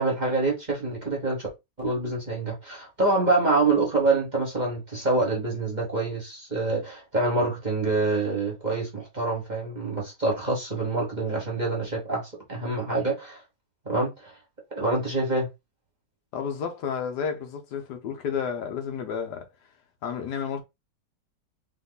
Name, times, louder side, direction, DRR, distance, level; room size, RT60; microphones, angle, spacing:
voice 1, 0.0-1.5 1.8-13.4 13.8-14.4 14.7-15.5, right 3 dB, 25° right, 1.4 m, -26 dB
voice 2, 16.3-19.5 20.0-20.6, left 7 dB, 70° left, 1.3 m, -31 dB
3.7 x 3.1 x 4.0 m
omnidirectional pair, 2.0 m